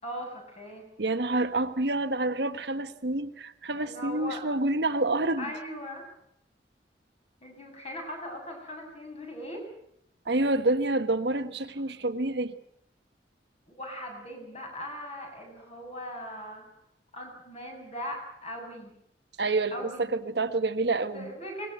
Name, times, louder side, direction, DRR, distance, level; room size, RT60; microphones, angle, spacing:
voice 1, 0.0-0.8 3.8-4.4 5.4-6.0 7.4-9.7 12.0-12.1 13.7-16.6 17.1-18.9 19.7-20.1 21.1-21.7, equal, 35° left, 2 dB, 7.9 m, -39 dB
voice 2, 1.0-5.5 10.3-12.6 19.4-21.3, right 2 dB, 70° right, 8 dB, 1.4 m, -28 dB
23.5 x 20.0 x 8.2 m, 0.74 s
head